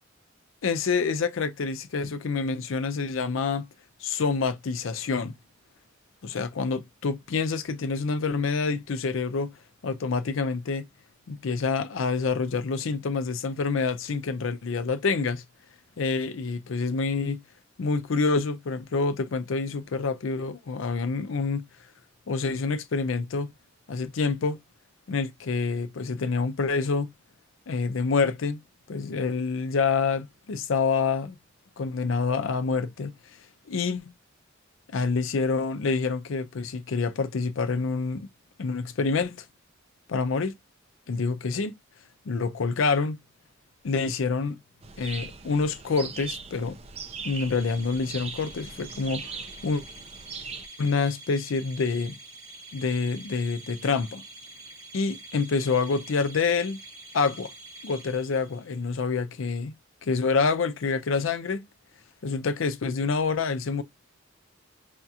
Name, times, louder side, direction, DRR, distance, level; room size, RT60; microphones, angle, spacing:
voice 1, 0.6-3.7 4.0-5.3 6.2-9.5 9.8-10.9 11.3-15.4 16.0-17.4 17.8-21.6 22.3-23.5 23.9-24.6 25.1-27.1 27.7-28.6 28.9-31.4 31.8-33.1 33.7-34.1 34.9-38.3 38.6-39.4 40.1-40.6 41.1-41.8 42.3-43.2 43.8-44.6 45.0-46.8 47.2-49.4 49.6-49.8 50.8-52.2 52.7-54.2 54.9-56.8 57.1-57.5 57.8-59.7 60.0-61.7 62.2-63.8, left 4 dB, 70° left, 0.5 m, -27 dB
sound 1, 44.8-50.7, right 5 dB, 30° right, 0.4 m, -40 dB
sound 2, 47.0-58.8, right 2 dB, 85° right, 1.0 m, -46 dB
4.9 x 2.4 x 2.7 m
head